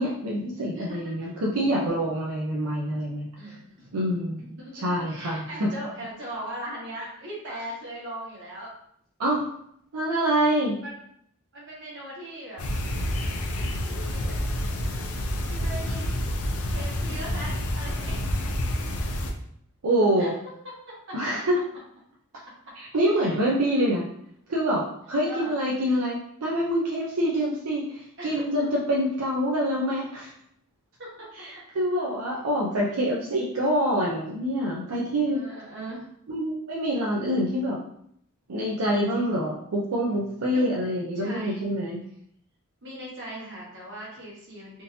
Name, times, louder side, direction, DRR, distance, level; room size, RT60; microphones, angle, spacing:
voice 1, 0.0-3.3 3.9-4.4 4.7-5.7 9.2-9.4 9.9-10.8 19.8-20.3 21.1-21.6 22.8-24.0 24.5-30.3 31.4-35.4 36.3-37.8 38.5-42.0, equal, 85° right, -3 dB, 0.6 m, -26 dB
voice 2, 0.7-1.3 3.4-3.9 4.6-8.7 10.8-11.0 11.5-12.6 13.8-14.4 15.5-16.2 16.7-18.3 20.2-20.3 21.1-21.2 23.1-23.4 25.2-25.6 28.2-28.7 31.0-31.3 32.8-33.3 35.3-36.0 38.8-39.4 40.5-40.7 41.2-41.6 42.8-44.8, right 1 dB, 60° right, -5 dB, 1.5 m, -39 dB
sound 1, 12.6-19.3, left 1 dB, 85° left, 0.6 m, -28 dB
3.6 x 2.8 x 2.7 m, 0.69 s
head